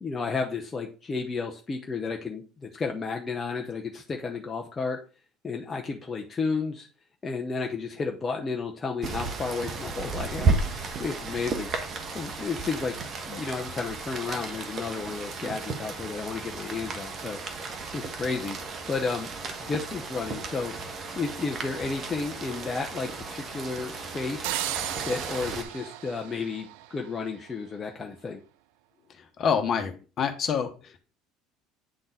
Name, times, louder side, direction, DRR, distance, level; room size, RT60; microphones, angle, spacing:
voice 1, 0.0-5.0 5.4-6.9 7.2-11.7 12.0-13.0 13.2-17.4 17.9-18.6 18.9-19.3 19.6-20.7 21.2-24.5 25.1-28.4, left 4 dB, 30° left, 1 dB, 0.9 m, -32 dB
Rain, 9.0-25.6, right 4 dB, 45° right, 1.3 m, -34 dB
sound 1, 24.4-27.3, right 13 dB, 75° right, 0.4 m, -35 dB
voice 2, 29.2-31.0, left 7 dB, 45° left, 7 dB, 1.2 m, -27 dB
8.9 x 3.9 x 4.0 m, 0.36 s
hypercardioid pair, 70°, 0 cm